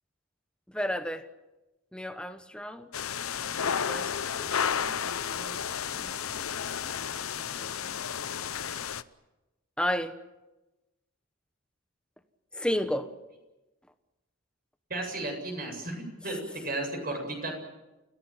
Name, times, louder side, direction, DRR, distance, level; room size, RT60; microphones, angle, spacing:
voice 1, 0.7-1.2 1.9-2.9 3.6-4.1 4.4-5.6 5.9-6.4 7.6-8.0 9.8-10.1 12.5-13.1, equal, 5° left, 9 dB, 1.2 m, -33 dB
sound 1, 2.9-9.0, left 7 dB, 90° left, 0.8 m, -32 dB
voice 2, 14.9-17.6, right 2 dB, 45° right, 3 dB, 7.9 m, -34 dB
29.5 x 16.5 x 9.1 m, 1.0 s
head